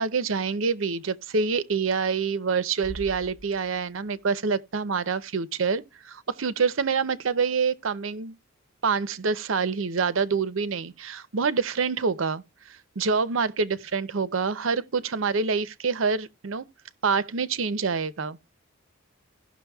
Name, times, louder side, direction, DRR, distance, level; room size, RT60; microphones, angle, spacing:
voice 1, 0.0-8.4 8.8-16.7 17.0-18.4, right 5 dB, 75° right, 0.7 m, -26 dB
Bass drum, 2.8-4.3, right 1 dB, 15° left, 1.8 m, -43 dB
17.0 x 6.1 x 2.3 m
head